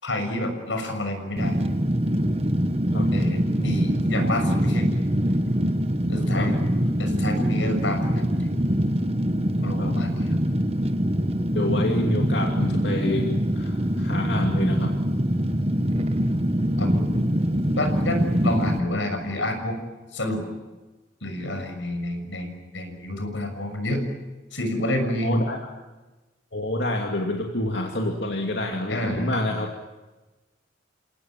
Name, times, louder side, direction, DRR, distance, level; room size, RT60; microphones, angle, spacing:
voice 1, 0.0-1.6 3.1-5.0 6.1-6.6 7.0-8.5 9.6-10.4 10.6-10.7 16.8-17.1 17.8-19.8 20.1-20.4 21.2-24.0 24.5-25.5 28.9-29.4, left 1 dB, 90° left, 6 dB, 6.6 m, -29 dB
Fire, 1.4-18.8, equal, 35° right, 1.4 m, -24 dB
voice 2, 11.5-13.3 13.6-14.9 25.2-25.6 26.5-29.7, left 1 dB, 65° left, 2 dB, 2.7 m, -27 dB
28.5 x 18.5 x 9.1 m, 1.2 s
head